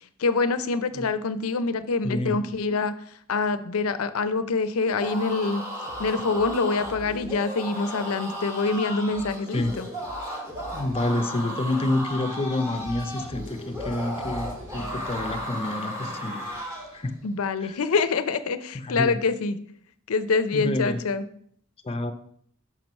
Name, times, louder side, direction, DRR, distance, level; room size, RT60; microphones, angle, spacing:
voice 1, 0.2-2.9 3.3-5.6 6.0-9.9 17.2-19.6 20.1-21.2, left 4 dB, 85° left, 12 dB, 0.5 m, -25 dB
voice 2, 2.0-2.4 9.5-9.8 10.7-16.4 16.9-17.2 17.6-17.8 18.7-19.2 20.5-21.0 21.8-22.1, left 2 dB, 25° left, 7 dB, 0.6 m, -28 dB
sound 1, 4.9-17.0, equal, 15° right, 1.5 m, -35 dB
sound 2, 5.8-17.8, left 1 dB, 40° right, 2.7 m, -45 dB
6.0 x 4.6 x 5.3 m, 0.62 s
head